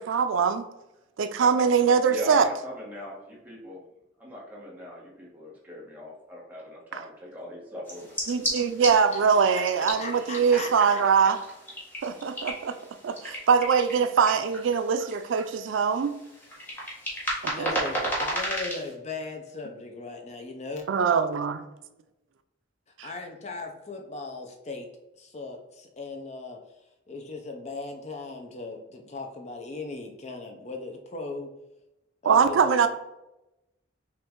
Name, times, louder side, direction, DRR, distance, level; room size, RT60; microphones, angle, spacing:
voice 1, 0.1-0.7 1.2-2.4 6.9-7.0 8.3-11.4 12.0-12.8 13.0-16.1 17.4-17.7 20.9-21.6 23.0-23.1 32.2-32.9, right 6 dB, 85° right, 9 dB, 0.4 m, -23 dB
voice 2, 2.1-3.8 4.2-8.2 10.0-11.3, left 1 dB, 10° right, -5 dB, 1.3 m, -40 dB
sound 1, 7.8-18.9, equal, 10° left, 1.2 m, -35 dB
voice 3, 8.9-9.4 9.8-11.0 17.5-20.9 23.0-24.9 25.2-26.6 27.1-31.5 32.2-32.9, left 3 dB, 35° left, 3 dB, 0.6 m, -38 dB
5.7 x 2.6 x 3.6 m, 0.93 s
head